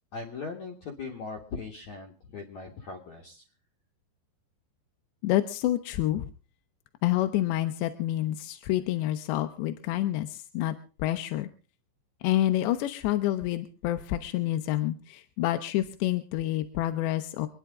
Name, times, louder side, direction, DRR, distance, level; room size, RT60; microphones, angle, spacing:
voice 1, 0.1-3.4, left 4 dB, 55° left, 1 dB, 2.3 m, -39 dB
voice 2, 5.2-6.3 7.0-10.7 11.0-11.5 12.2-17.5, left 14 dB, 90° left, 8 dB, 3.1 m, -28 dB
26.5 x 10.5 x 3.6 m, 0.35 s
omnidirectional pair, 4.9 m